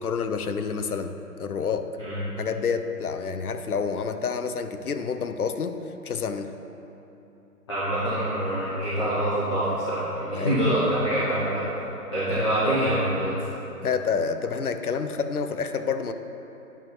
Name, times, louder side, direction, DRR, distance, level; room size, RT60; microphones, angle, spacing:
voice 1, 0.0-1.9 2.4-6.5 10.3-10.6 13.8-16.1, left 5 dB, 65° left, 9 dB, 0.6 m, -28 dB
voice 2, 7.7-11.6 12.1-13.3, right 1 dB, 20° left, -14 dB, 1.2 m, -25 dB
9.6 x 5.4 x 4.3 m, 3.0 s
figure-of-eight pair, 155°, 48 cm